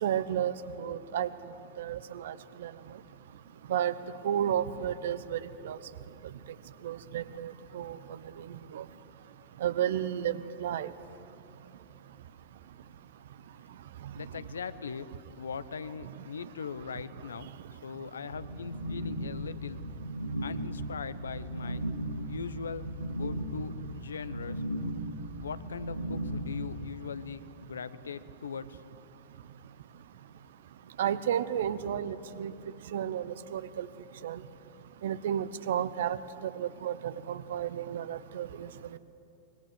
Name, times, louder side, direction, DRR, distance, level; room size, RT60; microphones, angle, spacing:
voice 1, 0.0-1.3 1.8-2.3 2.6-2.7 3.7-3.9 4.2-5.8 6.8-8.0 8.7-8.8 9.6-10.9 31.0-32.5 32.9-33.9 34.2-34.4 35.0-38.7, right 10 dB, 60° right, 15 dB, 1.0 m, -32 dB
voice 2, 14.1-19.8 20.4-21.8 22.3-24.6 25.4-28.8, left 6 dB, 70° left, 15 dB, 0.9 m, -40 dB
sound 1, 18.3-26.9, right 1 dB, 85° right, 2.3 m, -36 dB
25.0 x 21.5 x 8.1 m, 2.9 s
figure-of-eight pair, 90°, 0 cm